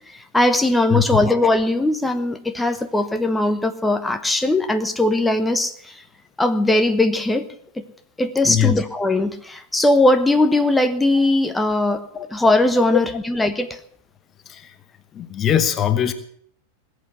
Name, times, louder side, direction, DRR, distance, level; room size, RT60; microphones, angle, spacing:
voice 1, 0.1-6.0 6.4-7.5 7.8-7.9 8.2-12.0 12.3-13.8, left 2 dB, 5° left, 8 dB, 1.1 m, -19 dB
voice 2, 11.9-12.3 12.9-13.0 14.5-14.8 15.1-16.1, left 10 dB, 25° left, 11 dB, 1.0 m, -21 dB
20.0 x 8.4 x 8.0 m, 0.66 s
figure-of-eight pair, 90°, 0 cm